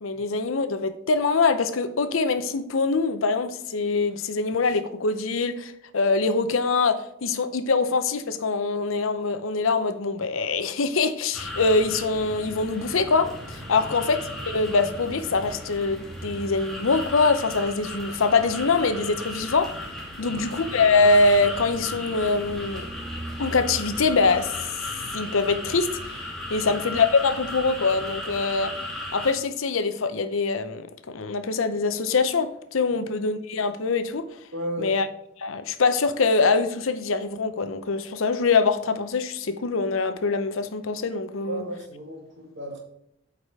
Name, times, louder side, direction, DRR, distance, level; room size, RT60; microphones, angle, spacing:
voice 1, 0.0-19.7 20.2-22.9 23.4-24.5 25.1-26.0 26.5-28.7 29.1-34.3 34.8-35.1 35.4-41.6, left 4 dB, 80° left, 0.7 m, -24 dB
sound 1, 11.3-29.3, left 1 dB, ahead, 1.4 m, -36 dB
voice 2, 34.5-35.0 41.4-42.8, right 1 dB, 65° right, 2.1 m, -35 dB
8.5 x 4.9 x 3.6 m
head